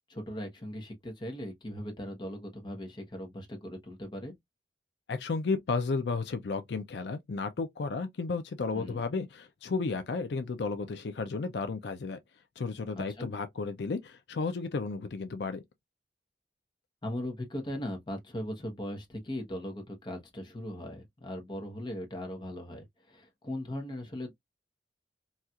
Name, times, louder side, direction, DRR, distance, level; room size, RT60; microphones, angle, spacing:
voice 1, 0.1-4.3 8.7-9.0 12.9-13.3 17.0-24.3, left 1 dB, 25° left, 0.9 m, -39 dB
voice 2, 5.1-12.2 12.6-15.6, left 4 dB, 70° left, 0.5 m, -33 dB
4.2 x 2.4 x 2.3 m
head